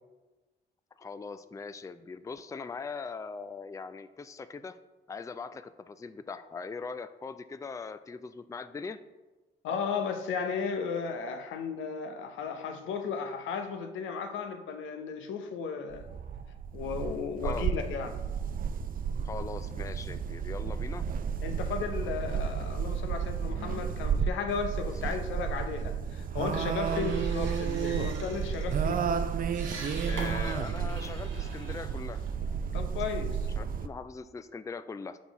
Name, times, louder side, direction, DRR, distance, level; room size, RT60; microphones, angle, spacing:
voice 1, 1.0-4.8 5.1-9.0 17.4-17.7 19.2-21.1 26.9-27.1 30.1-32.2 33.6-35.2, left 5 dB, 15° left, 11 dB, 0.3 m, -40 dB
voice 2, 9.6-16.1 16.7-18.2 21.4-29.1 32.7-33.5, left 5 dB, 85° left, 6 dB, 0.6 m, -35 dB
sound 1, 15.9-33.9, right 7 dB, 45° right, 0.4 m, -32 dB
sound 2, 26.4-32.9, right 3 dB, 80° right, 1.4 m, -44 dB
6.0 x 4.1 x 4.6 m, 1.2 s
supercardioid pair, 55°, 20 cm